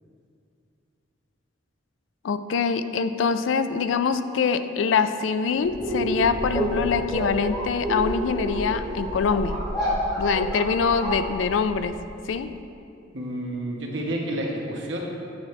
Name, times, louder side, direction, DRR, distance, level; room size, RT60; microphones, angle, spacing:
voice 1, 2.2-9.6 10.2-12.0 12.3-12.5, left 5 dB, 75° left, 11 dB, 0.4 m, -24 dB
sound 1, 5.6-11.9, equal, 20° left, 1.5 m, -29 dB
voice 2, 13.1-15.0, right 1 dB, 65° right, -1 dB, 1.2 m, -30 dB
8.6 x 7.4 x 3.2 m, 2.5 s
head